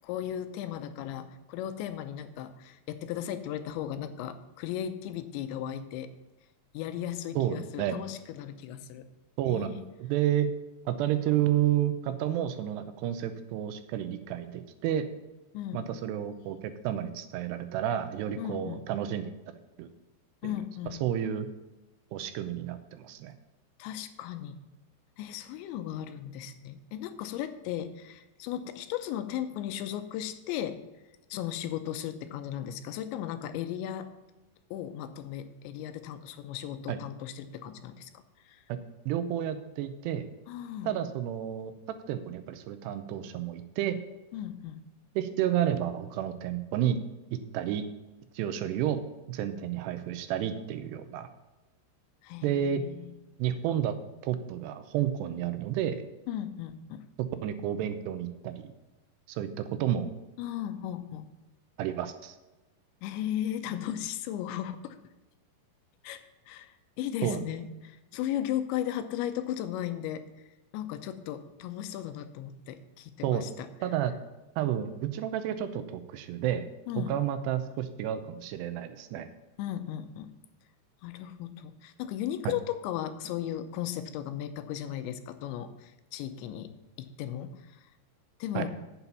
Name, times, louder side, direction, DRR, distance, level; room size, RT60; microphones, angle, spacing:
voice 1, 0.0-6.1 6.7-9.1 9.5-9.8 15.5-15.9 18.4-18.8 20.4-21.0 23.8-24.6 25.2-30.8 31.3-34.1 34.7-38.6 40.5-41.0 44.3-44.8 52.2-53.1 56.3-57.0 60.4-61.3 63.0-65.0 66.0-66.2 66.5-66.7 67.0-70.2 70.7-73.7 76.9-77.2 79.6-80.3 81.0-86.7 87.0-87.9 88.4-88.7, left 11 dB, 90° left, 10 dB, 3.1 m, -36 dB
voice 2, 7.4-8.0 9.4-9.7 10.0-10.5 10.9-15.1 15.7-19.9 20.4-20.6 21.0-21.5 22.1-23.3 36.9-37.0 38.7-38.8 39.1-40.3 40.8-41.7 42.1-44.0 45.2-47.0 47.3-47.8 48.3-49.0 49.3-51.3 52.4-52.8 53.4-53.9 54.2-56.0 57.4-58.7 59.3-60.1 61.8-62.4 67.2-67.4 73.2-73.5 73.8-74.1 74.6-76.6 77.1-79.3 82.5-82.6 88.5-88.7, right 11 dB, 80° right, 10 dB, 2.7 m, -30 dB
8.7 x 8.1 x 5.7 m, 1.1 s
omnidirectional pair, 5.1 m